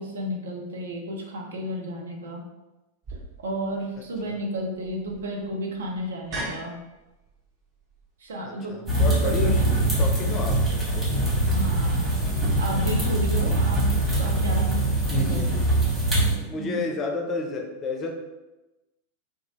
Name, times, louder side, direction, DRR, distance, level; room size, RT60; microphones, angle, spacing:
voice 1, 0.0-2.5 3.4-6.8 8.2-9.8 11.5-12.2 12.6-13.8 14.2-14.7 15.1-15.5 16.6-16.9, equal, 65° right, 1 dB, 0.5 m, -32 dB
sound 1, 3.0-9.3, right 1 dB, 35° right, 0.9 m, -41 dB
voice 2, 8.4-11.1 15.1-15.7 16.2-18.1, left 3 dB, 25° left, 3 dB, 0.4 m, -32 dB
sound 2, 8.9-16.3, right 1 dB, 15° right, 1.3 m, -23 dB
2.7 x 2.3 x 2.9 m, 1.1 s
figure-of-eight pair, 90°, 0 cm